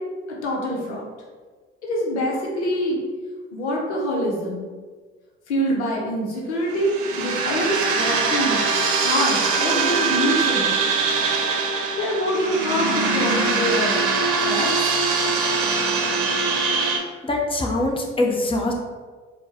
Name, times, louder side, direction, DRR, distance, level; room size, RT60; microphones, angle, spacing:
voice 1, 0.4-1.1 1.8-3.0 3.5-4.7 5.5-8.6 9.0-10.8 12.0-14.1 14.4-14.9, equal, 85° left, -2 dB, 0.7 m, -25 dB
sound 1, 6.7-17.0, right 4 dB, 65° right, 0.7 m, -22 dB
voice 2, 17.2-18.7, left 2 dB, 15° left, 0 dB, 0.9 m, -23 dB
4.4 x 2.2 x 4.2 m, 1.4 s
hypercardioid pair, 55°, 33 cm